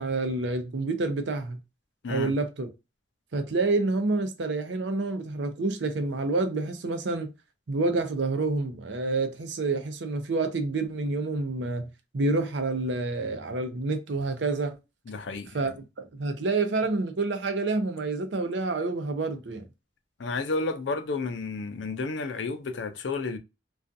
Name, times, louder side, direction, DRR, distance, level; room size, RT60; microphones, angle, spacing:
voice 1, 0.0-1.6 2.1-2.7 3.3-7.3 7.7-11.9 12.1-14.8 15.5-19.6, right 3 dB, 80° right, 0.6 m, -28 dB
voice 2, 15.1-15.7 20.2-23.4, left 3 dB, 85° left, 0.5 m, -31 dB
2.4 x 2.3 x 2.5 m
head